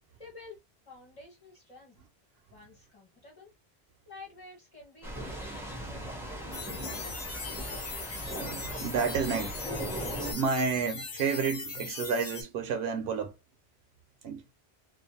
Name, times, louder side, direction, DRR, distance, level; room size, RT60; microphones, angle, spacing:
voice 1, 0.2-2.0 2.5-3.5 4.1-6.2, left 3 dB, 25° left, 1.2 m, -51 dB
sound 1, 5.0-10.3, right 1 dB, 5° right, 0.5 m, -38 dB
sound 2, 6.5-12.4, left 4 dB, 80° left, 1.0 m, -40 dB
voice 2, 8.3-9.7 10.3-13.4 14.2-14.4, right 5 dB, 75° right, 0.9 m, -30 dB
2.5 x 2.2 x 2.6 m
omnidirectional pair, 1.1 m